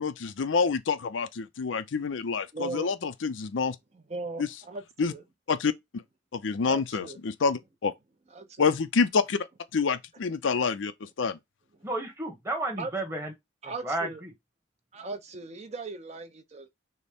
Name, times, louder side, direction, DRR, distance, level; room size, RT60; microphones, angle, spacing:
voice 1, 0.0-3.8 4.4-4.5 5.0-5.1 5.5-5.7 6.3-7.9 8.6-9.4 9.7-11.4, left 5 dB, 85° left, 0.5 m, -27 dB
voice 2, 2.5-2.9 3.9-5.2 6.6-7.2 8.3-8.7 12.8-12.9 13.6-14.2 14.9-16.7, right 3 dB, 35° right, 0.6 m, -38 dB
voice 3, 11.8-13.3 13.6-14.3, right 2 dB, 15° right, 1.1 m, -32 dB
6.3 x 2.1 x 3.5 m
head